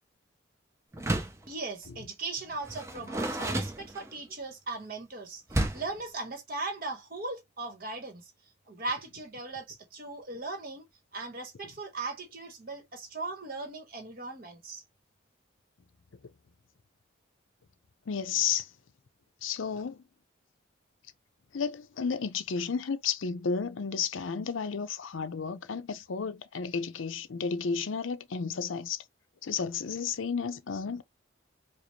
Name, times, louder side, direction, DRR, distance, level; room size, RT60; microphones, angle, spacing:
Door, 0.9-1.5 2.6-4.3 5.5-6.0, right 1 dB, 15° right, 0.6 m, -31 dB
voice 1, 1.5-8.3 8.7-10.8 11.1-14.8, right 3 dB, 45° right, 1.2 m, -38 dB
voice 2, 18.1-18.7 19.4-20.0 21.5-29.0 29.4-31.0, left 6 dB, 80° left, 0.5 m, -32 dB
5.0 x 2.0 x 3.0 m
head